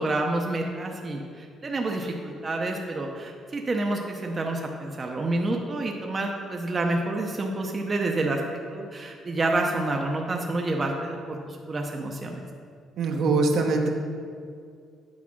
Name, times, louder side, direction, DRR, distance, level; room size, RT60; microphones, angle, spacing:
voice 1, 0.0-12.4, right 2 dB, 25° right, 1 dB, 0.7 m, -28 dB
voice 2, 13.0-13.9, right 3 dB, 65° right, 2 dB, 0.9 m, -22 dB
8.5 x 4.8 x 6.1 m, 2.2 s
cardioid pair, 140°, 0 cm